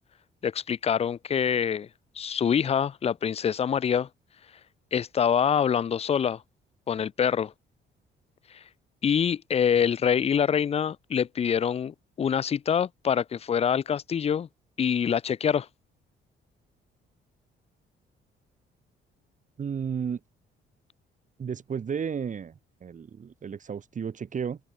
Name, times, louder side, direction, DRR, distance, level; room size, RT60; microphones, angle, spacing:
voice 1, 0.4-1.9 2.2-4.1 4.9-6.4 6.9-7.5 9.0-14.5 14.8-15.7, left 8 dB, 30° left, 0.4 m, -25 dB
voice 2, 19.6-20.2 21.4-24.6, right 7 dB, 40° right, 1.0 m, -33 dB
open air
cardioid pair, 90°, 20 cm